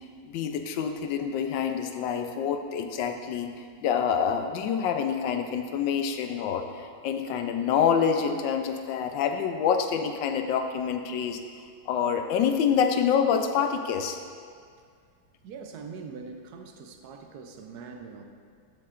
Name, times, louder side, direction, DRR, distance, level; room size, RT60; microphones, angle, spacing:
voice 1, 0.3-3.5 3.8-11.4 11.9-14.2, left 7 dB, 85° left, 6 dB, 1.3 m, -26 dB
voice 2, 15.4-18.2, right 5 dB, 70° right, 4 dB, 1.1 m, -42 dB
11.5 x 7.1 x 2.5 m, 2.1 s
omnidirectional pair, 2.0 m